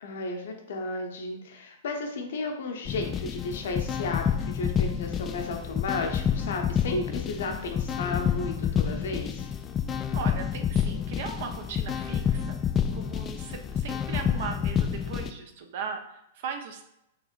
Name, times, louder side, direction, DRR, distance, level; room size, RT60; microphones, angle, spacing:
voice 1, 0.0-9.5, left 3 dB, 60° left, 3 dB, 0.7 m, -33 dB
sound 1, 2.9-15.3, left 8 dB, 25° left, 0.3 m, -29 dB
voice 2, 10.1-12.6 12.9-16.8, right 5 dB, 55° right, 5 dB, 0.6 m, -38 dB
5.3 x 2.9 x 2.5 m, 0.82 s
figure-of-eight pair, 105°, 0 cm